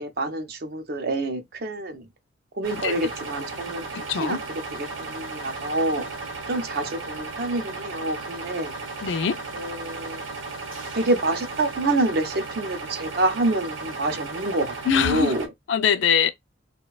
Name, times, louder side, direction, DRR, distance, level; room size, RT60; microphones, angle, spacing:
voice 1, 0.0-2.1 2.6-3.8 4.2-4.4 4.7-6.1 6.5-8.8 9.5-10.2 10.9-15.5, right 2 dB, 50° right, 0.5 m, -27 dB
sound 1, 2.6-15.5, right 3 dB, 90° right, 0.8 m, -35 dB
voice 2, 3.9-4.4 9.0-9.4 14.9-15.3 15.7-16.3, left 7 dB, 70° left, 0.3 m, -22 dB
3.0 x 2.1 x 2.3 m
head